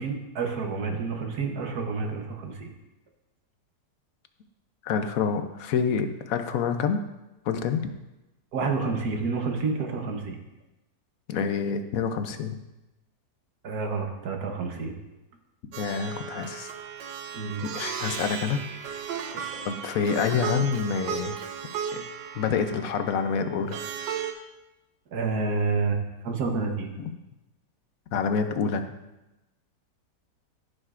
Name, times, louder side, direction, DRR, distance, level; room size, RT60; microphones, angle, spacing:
voice 1, 0.0-2.7 8.5-10.4 13.6-15.0 17.3-17.6 19.3-19.7 25.1-26.9, right 4 dB, 65° right, 3 dB, 1.6 m, -29 dB
voice 2, 4.8-7.0 7.5-7.9 11.3-12.6 15.8-16.7 17.7-18.6 19.6-21.4 21.9-22.1 22.4-23.8 28.1-28.8, left 6 dB, 65° left, 8 dB, 1.0 m, -27 dB
Plucked string instrument, 15.7-24.3, right 7 dB, 85° right, 1.3 m, -35 dB
15.5 x 6.4 x 2.5 m, 0.99 s
omnidirectional pair, 1.8 m